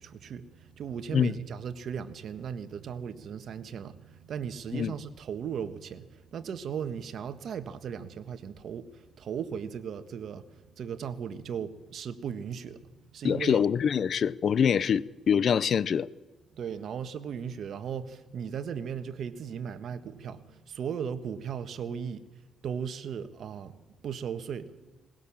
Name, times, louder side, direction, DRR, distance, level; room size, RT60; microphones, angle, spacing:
voice 1, 0.0-13.6 16.5-22.2 22.6-23.8 24.0-24.7, right 7 dB, 65° right, 1.4 m, -37 dB
voice 2, 13.2-16.1, left 7 dB, 55° left, 0.6 m, -25 dB
20.5 x 19.0 x 7.3 m
cardioid pair, 90°, 0 cm